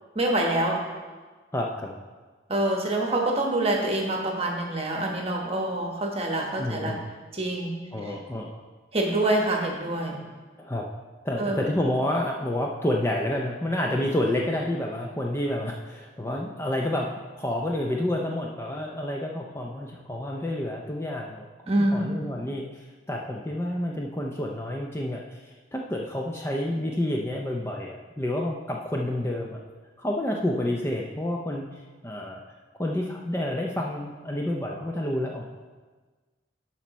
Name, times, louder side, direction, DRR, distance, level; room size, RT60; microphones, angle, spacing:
voice 1, 0.1-0.8 2.5-7.0 7.3-7.8 8.9-10.2 11.4-11.6 21.7-22.2, right 1 dB, 30° right, 1 dB, 1.1 m, -26 dB
voice 2, 1.5-2.0 6.6-7.0 7.9-8.6 10.6-10.9 11.2-21.5 21.9-29.6 30.0-32.4 32.8-35.4, left 1 dB, 15° left, -1 dB, 0.4 m, -29 dB
12.0 x 4.4 x 4.1 m, 1.4 s
head